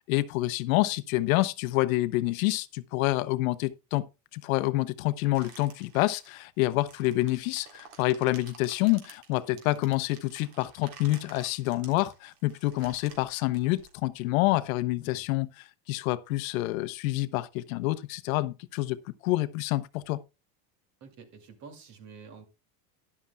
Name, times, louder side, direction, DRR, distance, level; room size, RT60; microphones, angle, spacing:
voice 1, 0.1-4.1 4.3-15.5 15.9-20.2, left 18 dB, 90° left, 0.9 m, -27 dB
sound 1, 5.3-14.5, right 6 dB, 60° right, 3.5 m, -52 dB
voice 2, 21.0-22.5, right 5 dB, 45° right, 2.5 m, -49 dB
13.0 x 11.0 x 2.3 m
cardioid pair, 155°, 40 cm